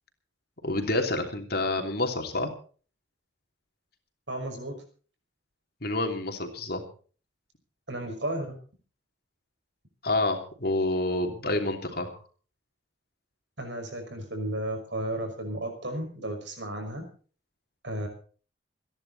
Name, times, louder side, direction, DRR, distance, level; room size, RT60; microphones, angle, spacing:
voice 1, 0.6-2.5 5.8-6.8 10.0-12.2, left 2 dB, 55° left, 4 dB, 3.0 m, -28 dB
voice 2, 4.3-4.8 7.9-8.6 13.6-17.0 17.8-18.1, right 1 dB, 70° right, 5 dB, 5.9 m, -33 dB
27.5 x 10.5 x 4.2 m, 0.41 s
head